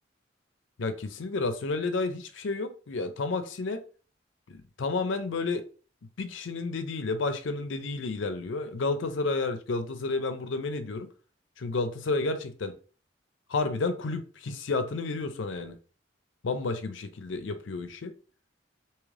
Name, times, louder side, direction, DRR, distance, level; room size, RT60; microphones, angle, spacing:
voice 1, 0.8-3.8 4.5-5.6 6.2-11.1 11.6-12.8 13.5-15.8 16.4-18.1, left 3 dB, 80° left, 0.5 m, -31 dB
3.3 x 2.8 x 3.6 m
head